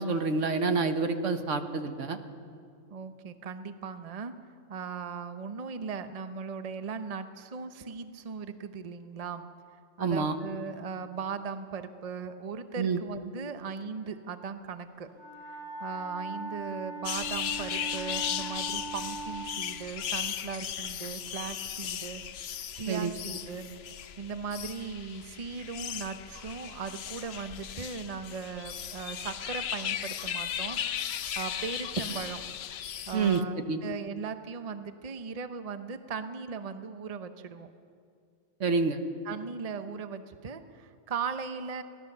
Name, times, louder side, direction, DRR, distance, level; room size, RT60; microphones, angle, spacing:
voice 1, 0.0-2.2 10.0-10.3 12.8-13.0 22.9-23.1 33.1-33.4 33.7-33.8 38.6-39.0, right 4 dB, 70° right, 7 dB, 1.5 m, -27 dB
voice 2, 2.9-4.3 4.7-9.5 10.0-15.1 15.5-22.2 22.7-23.7 24.2-32.4 33.1-37.7 39.2-41.8, right 5 dB, 35° right, 9 dB, 0.8 m, -38 dB
Wind instrument woodwind instrument, 15.1-19.5, right 3 dB, 20° left, 4.5 m, -40 dB
sound 1, 17.0-33.4, left 9 dB, 60° left, 0.8 m, -36 dB
23.5 x 17.5 x 6.7 m, 2.3 s
omnidirectional pair, 1.3 m